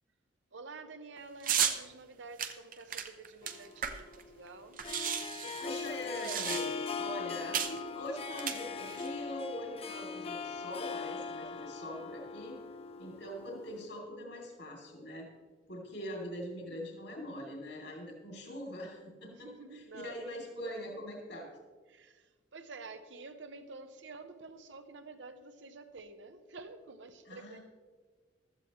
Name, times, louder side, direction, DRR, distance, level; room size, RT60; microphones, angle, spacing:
voice 1, 0.5-4.9 19.3-20.3 21.9-27.6, right 3 dB, 75° right, 1.0 m, -49 dB
sound 1, 1.4-1.8 2.4-4.2 4.5-4.6 4.8-6.9 7.5-7.8 8.3-9.1, right 8 dB, 45° right, 0.8 m, -34 dB
Harp, 3.4-13.9, left 5 dB, 30° left, 0.6 m, -40 dB
voice 2, 5.4-6.7 7.0-12.6 13.0-15.3 15.7-21.5 27.3-27.6, equal, 75° left, 2.8 m, -43 dB
15.5 x 13.0 x 3.1 m
head